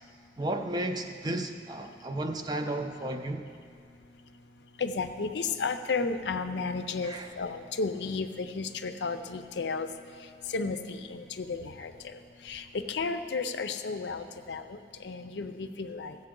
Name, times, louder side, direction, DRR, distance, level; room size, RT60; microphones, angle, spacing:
voice 1, 0.4-3.5 7.0-7.3, right 1 dB, 25° right, 6 dB, 0.5 m, -33 dB
voice 2, 4.8-9.9 10.5-12.1 12.4-16.2, left 4 dB, 85° left, 9 dB, 0.5 m, -33 dB
15.5 x 7.6 x 3.8 m, 2.2 s
head